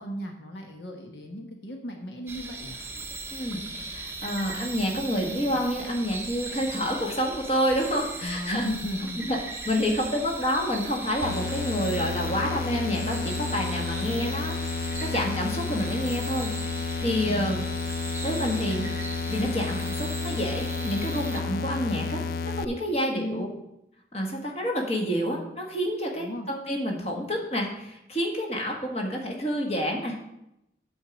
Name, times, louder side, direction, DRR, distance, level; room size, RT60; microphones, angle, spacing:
voice 1, 0.0-2.8 8.2-9.3 9.6-9.8 17.2-17.7 23.1-23.5 26.2-26.5, left 1 dB, 75° left, 3 dB, 1.1 m, -35 dB
sound 1, 2.3-21.4, right 3 dB, 15° right, 0.7 m, -38 dB
voice 2, 3.3-8.6 9.2-9.4 9.6-16.5 17.0-17.6 18.2-18.9 19.3-23.5 24.1-30.2, equal, 35° left, 0 dB, 1.6 m, -28 dB
sound 2, 11.2-22.6, left 4 dB, 55° left, 0.3 m, -31 dB
8.6 x 4.6 x 7.3 m, 0.85 s
head